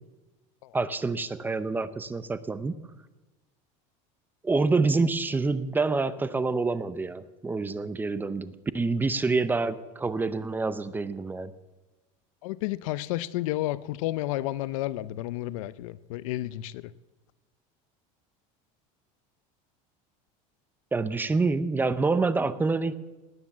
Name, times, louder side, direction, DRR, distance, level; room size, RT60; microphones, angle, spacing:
voice 1, 0.7-2.7 4.4-11.5 20.9-22.9, right 3 dB, 10° right, 14 dB, 0.7 m, -27 dB
voice 2, 12.4-16.9, left 16 dB, 85° left, 18 dB, 0.6 m, -31 dB
19.0 x 9.6 x 7.3 m, 1.1 s
cardioid pair, 145°, 17 cm